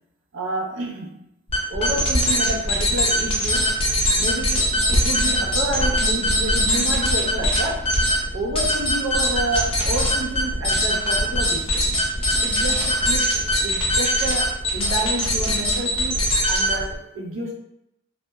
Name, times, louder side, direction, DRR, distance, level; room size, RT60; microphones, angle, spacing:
voice 1, 0.3-1.3 1.7-3.8 4.2-8.0 8.3-11.9 12.4-17.5, right 1 dB, 65° right, -1 dB, 0.5 m, -29 dB
sound 1, 1.5-17.0, equal, 25° left, 0.5 m, -21 dB
2.7 x 2.1 x 2.2 m, 0.83 s
head